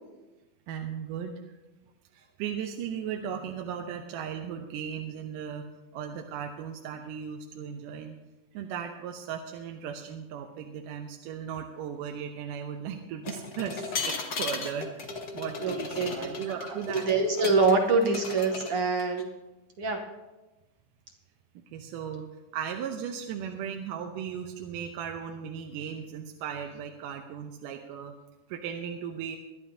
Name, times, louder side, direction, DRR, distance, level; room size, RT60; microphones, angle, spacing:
voice 1, 0.7-1.6 2.1-5.7 5.9-8.2 8.5-15.1 15.3-17.1 21.7-22.3 22.5-28.1 28.5-29.4, right 8 dB, 85° right, 3 dB, 2.3 m, -37 dB
sound 1, 13.2-17.7 18.0-19.2, left 4 dB, 75° left, 0.9 m, -36 dB
voice 2, 15.6-16.1 17.1-19.3 19.8-20.0, right 3 dB, 65° right, 3 dB, 1.5 m, -25 dB
23.0 x 11.0 x 2.7 m, 1.1 s
omnidirectional pair, 3.8 m